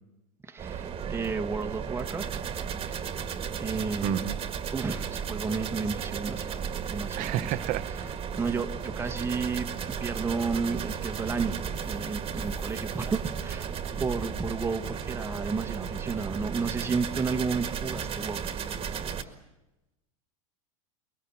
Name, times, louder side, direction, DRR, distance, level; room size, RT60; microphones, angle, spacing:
voice 1, 0.4-2.4 3.6-4.3 4.7-7.7 8.4-9.7 10.0-11.6 11.8-13.7 14.0-18.4 19.2-19.3, right 4 dB, 15° right, 6 dB, 1.4 m, -32 dB
sound 1, 0.6-19.2, right 7 dB, 30° right, 1.8 m, -34 dB
voice 2, 4.0-4.4 7.2-7.9, right 14 dB, 45° right, 14 dB, 1.0 m, -30 dB
sound 2, 10.6-16.1, left 2 dB, 20° left, 2.5 m, -47 dB
23.0 x 23.0 x 7.3 m, 1.0 s
hypercardioid pair, 95°, 18 cm